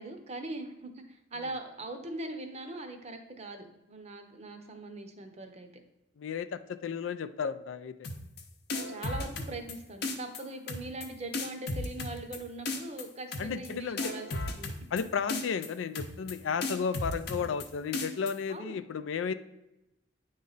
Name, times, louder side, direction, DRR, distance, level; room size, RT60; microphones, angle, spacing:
voice 1, 0.0-5.7 8.9-14.7 17.3-17.5 18.5-18.8, right 2 dB, 35° right, 5 dB, 0.7 m, -41 dB
voice 2, 6.2-7.9 13.4-14.1 14.9-19.3, left 6 dB, 80° left, 12 dB, 0.4 m, -33 dB
sound 1, 8.0-8.4 8.7-9.7 10.0-10.4 10.7-11.1 11.3-12.4 12.6-13.0 13.3-13.7 14.0-15.0 15.3-15.7 15.9-16.3 16.6-17.6 17.9-18.3, left 2 dB, 55° left, 0.7 m, -34 dB
9.2 x 3.2 x 3.9 m, 0.92 s
head